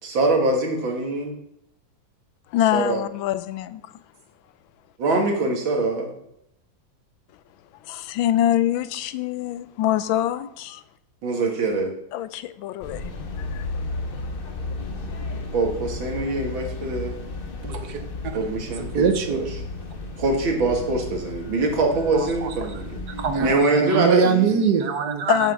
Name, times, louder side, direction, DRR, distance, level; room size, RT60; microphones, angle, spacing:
voice 1, 0.0-1.3 2.7-3.0 5.0-6.1 11.2-11.9 15.5-17.2 18.3-19.6 20.2-23.0 23.4-24.6, right 2 dB, 80° right, 2.5 m, -23 dB
voice 2, 2.5-3.8 7.8-10.8 12.1-13.8 25.2-25.5, left 12 dB, 85° left, 1.4 m, -25 dB
sound 1, 12.8-23.6, left 3 dB, 45° left, 0.7 m, -33 dB
voice 3, 17.6-18.0 18.9-19.5 22.1-22.5 23.1-25.4, right 6 dB, 60° right, 1.4 m, -23 dB
7.5 x 5.7 x 7.2 m
omnidirectional pair, 2.1 m